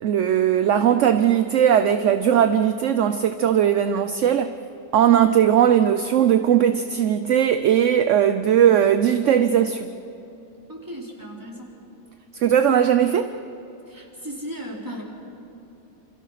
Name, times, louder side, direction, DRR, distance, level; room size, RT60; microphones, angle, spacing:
voice 1, 0.0-4.5 4.9-9.9 12.3-13.3, right 9 dB, 60° right, 0.9 m, -19 dB
voice 2, 10.7-11.7 13.9-15.0, equal, 10° right, 4.2 m, -36 dB
27.5 x 27.5 x 5.9 m
omnidirectional pair, 1.8 m